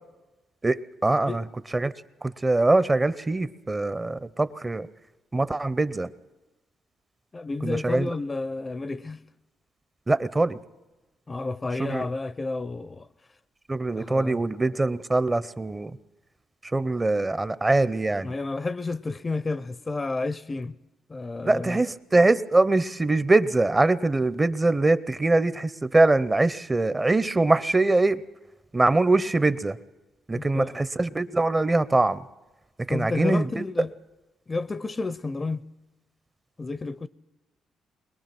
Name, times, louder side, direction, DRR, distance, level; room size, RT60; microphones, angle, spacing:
voice 1, 0.6-1.4 1.7-1.9 2.2-4.9 5.3-6.1 7.6-8.1 10.1-10.6 11.8-12.1 13.7-15.9 16.7-18.3 21.4-28.2 28.7-29.8 30.3-32.2 32.8-33.5, right 2 dB, 20° right, 0.7 m, -23 dB
voice 2, 7.3-9.2 11.3-13.1 14.0-14.4 18.2-20.7 21.1-21.8 30.3-30.8 32.9-33.9 34.5-35.6 36.6-37.1, left 3 dB, 25° left, 0.6 m, -31 dB
21.5 x 21.0 x 6.0 m
cardioid pair, 90°, 0 cm